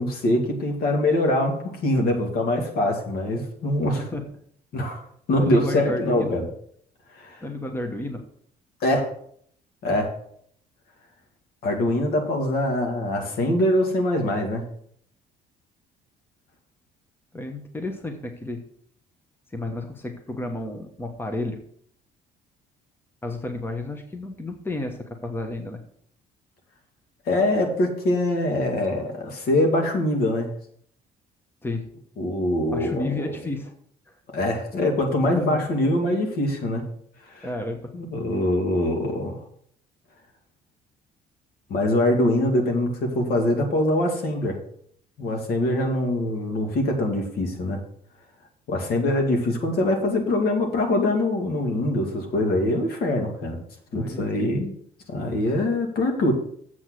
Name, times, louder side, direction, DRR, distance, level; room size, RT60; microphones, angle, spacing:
voice 1, 0.0-1.6 1.8-4.0 4.7-5.0 5.3-6.4 7.1-7.4 8.8-9.1 9.8-10.1 11.6-14.6 27.3-30.5 32.2-33.1 34.3-36.8 37.3-37.5 37.9-39.4 41.7-44.6 45.2-47.8 48.7-53.6 53.9-54.7 55.1-56.3, left 1 dB, 65° left, 3 dB, 2.3 m, -23 dB
voice 2, 5.4-6.4 7.4-8.3 17.3-18.6 19.5-21.6 23.2-25.8 31.6-31.9 32.7-33.7 35.2-35.6 37.4-37.9 53.9-54.5, left 2 dB, 15° left, 5 dB, 1.1 m, -31 dB
7.6 x 6.4 x 6.3 m, 0.64 s
cardioid pair, 110°, 17 cm